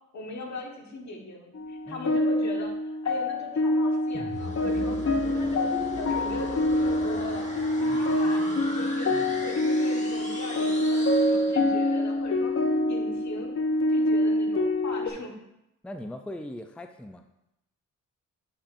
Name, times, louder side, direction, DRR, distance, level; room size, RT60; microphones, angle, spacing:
voice 1, 0.1-5.0 5.3-5.7 6.0-7.5 7.8-8.4 8.8-9.1 9.4-12.5 12.8-13.5 13.9-15.4, left 2 dB, 60° left, 1 dB, 1.5 m, -39 dB
sound 1, 1.5-15.1, left 1 dB, 45° left, 0.8 m, -26 dB
voice 2, 1.9-2.2 7.9-8.2 9.1-9.5 15.8-17.2, left 1 dB, 5° left, 6 dB, 0.4 m, -41 dB
sound 2, 4.1-12.0, left 1 dB, 20° left, 1.4 m, -38 dB
8.2 x 5.9 x 2.6 m, 0.86 s
cardioid pair, 65°, 32 cm